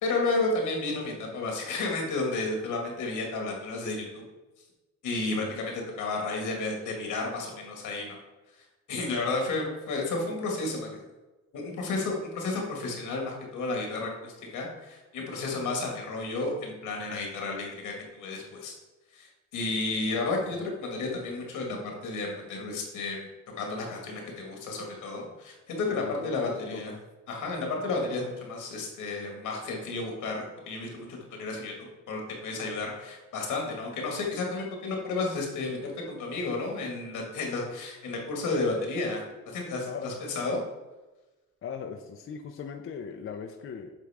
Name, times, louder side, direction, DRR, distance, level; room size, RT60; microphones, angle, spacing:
voice 1, 0.0-4.2 5.0-8.2 8.9-10.9 11.5-18.7 19.1-23.3 23.5-26.9 27.3-40.6, left 3 dB, 85° left, 1 dB, 1.8 m, -32 dB
voice 2, 25.9-27.1 39.8-40.1 41.6-43.9, left 6 dB, 45° left, 5 dB, 0.6 m, -39 dB
8.1 x 3.8 x 3.5 m, 1.1 s
cardioid pair, 90°, 30 cm